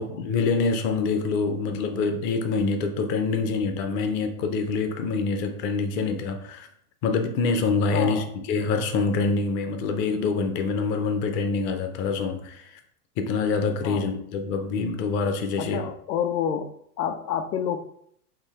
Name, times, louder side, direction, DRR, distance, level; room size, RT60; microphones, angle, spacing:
voice 1, 0.0-6.7 7.0-12.8 13.2-15.9, left 4 dB, 25° left, 7 dB, 0.4 m, -26 dB
voice 2, 7.9-8.3 13.8-14.1 15.6-16.7 17.0-17.8, left 8 dB, 90° left, 9 dB, 0.7 m, -28 dB
4.1 x 2.6 x 4.1 m, 0.69 s
hypercardioid pair, 125°, 46 cm